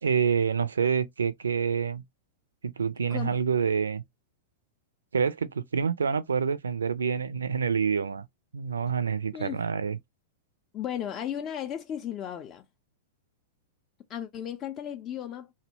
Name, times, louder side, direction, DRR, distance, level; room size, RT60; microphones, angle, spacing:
voice 1, 0.0-2.0 2.6-4.0 5.1-8.3 8.5-10.0, right 6 dB, 70° right, 0.3 m, -27 dB
voice 2, 9.3-9.6 10.7-12.7 14.1-15.5, left 10 dB, 30° left, 0.4 m, -35 dB
2.6 x 2.1 x 2.7 m
figure-of-eight pair, 95°, 0 cm